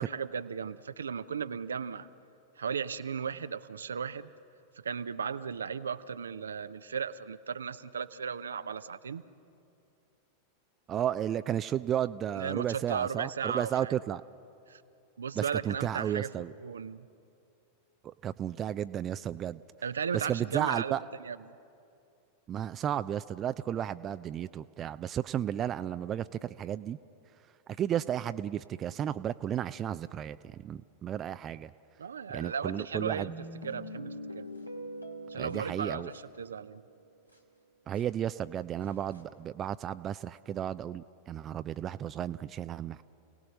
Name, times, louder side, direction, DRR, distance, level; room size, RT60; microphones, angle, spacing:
voice 1, 0.0-2.1 2.6-4.3 4.8-9.2 12.4-13.9 14.7-14.8 15.2-17.1 19.8-21.4 32.0-33.3 33.6-34.5 35.3-36.8, right 6 dB, 70° right, 13 dB, 0.6 m, -36 dB
voice 2, 10.9-14.2 15.3-16.5 18.0-19.6 20.1-21.0 22.5-27.0 27.8-31.7 32.3-33.3 35.4-36.1 37.9-43.0, right 10 dB, 30° right, 13 dB, 0.4 m, -33 dB
sound 1, 33.3-36.9 37.3-37.4 37.9-38.0 38.8-39.2, equal, 90° left, 2.0 m, -44 dB
29.5 x 18.0 x 6.3 m, 2.5 s
figure-of-eight pair, 90°, 0 cm